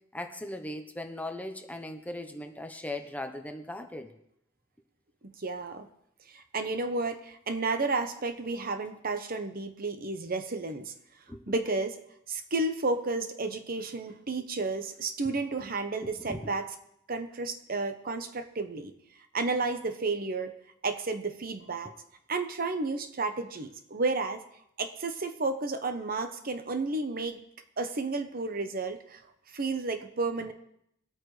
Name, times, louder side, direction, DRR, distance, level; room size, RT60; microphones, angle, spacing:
voice 1, 0.1-4.1 11.3-11.4 16.0-16.6, left 1 dB, 10° left, 6 dB, 0.9 m, -38 dB
voice 2, 5.4-5.9 6.3-10.9 11.5-12.0 12.3-16.7 17.1-18.9 19.3-20.6 20.8-21.9 22.3-24.4 24.8-27.4 27.8-29.2 29.5-30.5, right 3 dB, 50° right, 8 dB, 1.0 m, -32 dB
22.0 x 8.7 x 3.3 m, 0.76 s
head